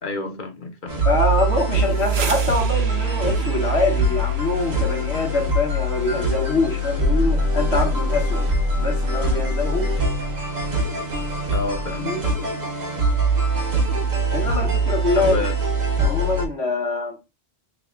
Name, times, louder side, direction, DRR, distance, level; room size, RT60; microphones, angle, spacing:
voice 1, 0.0-1.0 11.5-12.2 15.2-15.5, left 3 dB, 50° left, 0.9 m, -29 dB
sound 1, 0.9-16.5, right 1 dB, 45° right, 0.9 m, -23 dB
voice 2, 1.0-8.5 8.8-10.0 11.9-12.2 14.3-15.5 16.0-17.2, left 3 dB, 80° left, 1.4 m, -24 dB
sound 2, 1.7-11.4, right 6 dB, 70° right, 0.9 m, -40 dB
3.5 x 2.2 x 3.6 m
omnidirectional pair, 1.1 m